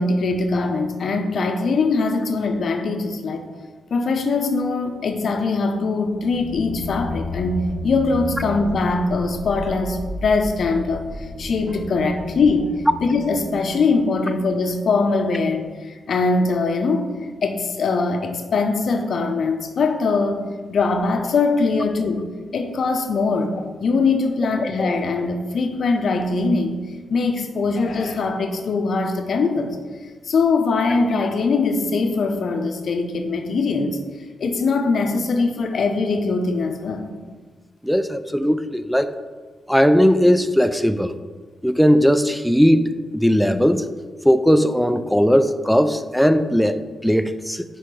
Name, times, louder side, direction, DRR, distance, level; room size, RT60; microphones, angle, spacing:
voice 1, 0.0-3.5 3.9-12.7 13.0-17.1 17.4-22.3 22.5-23.5 23.8-26.8 27.1-29.8 30.2-34.0 34.4-37.1, left 3 dB, 65° left, 6 dB, 0.7 m, -22 dB
sound 1, 6.1-14.6, left 1 dB, 80° right, 1.9 m, -33 dB
voice 2, 37.8-39.1 39.7-41.2 41.6-43.9 44.2-47.6, equal, ahead, 10 dB, 0.4 m, -18 dB
5.5 x 4.3 x 4.7 m, 1.4 s
cardioid pair, 95°, 0 cm